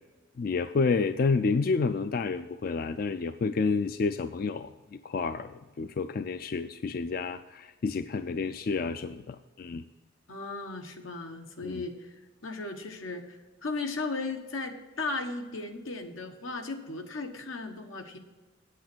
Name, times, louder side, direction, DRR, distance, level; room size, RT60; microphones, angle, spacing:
voice 1, 0.4-9.8 11.6-11.8, left 4 dB, 45° left, 11 dB, 0.3 m, -30 dB
voice 2, 10.3-12.1 12.4-18.2, left 3 dB, 90° left, 5 dB, 1.4 m, -36 dB
8.5 x 8.2 x 6.2 m, 1.2 s
head